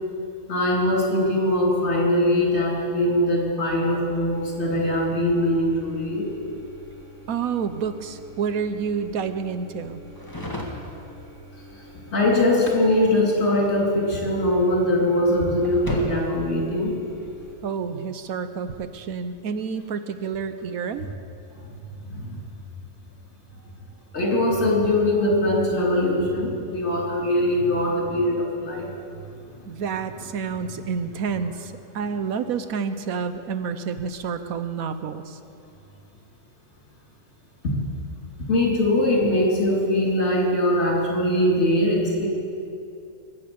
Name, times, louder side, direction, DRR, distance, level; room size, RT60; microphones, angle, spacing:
voice 1, 0.5-6.2 12.1-16.9 22.0-22.4 24.1-28.9 37.6-37.7 38.5-42.3, left 1 dB, 50° left, -3 dB, 3.6 m, -22 dB
sound 1, 4.3-17.5, left 1 dB, 15° left, 1.9 m, -39 dB
voice 2, 7.3-10.0 17.6-21.1 29.7-35.4, right 6 dB, 80° right, 10 dB, 1.2 m, -29 dB
22.5 x 8.5 x 7.0 m, 2.5 s
omnidirectional pair, 1.5 m